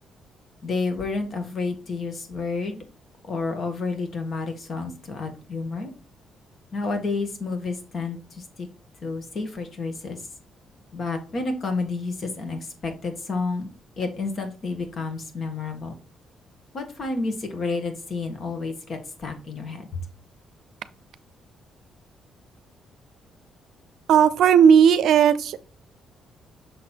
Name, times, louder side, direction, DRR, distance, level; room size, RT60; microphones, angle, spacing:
voice 1, 0.6-2.8 3.2-5.9 6.7-8.7 9.0-10.2 10.9-13.7 14.0-15.9 16.7-20.0, left 3 dB, 50° left, 5 dB, 1.7 m, -30 dB
voice 2, 24.1-25.6, right 8 dB, 75° right, 14 dB, 0.5 m, -15 dB
6.4 x 4.2 x 4.5 m, 0.36 s
cardioid pair, 90°, 0 cm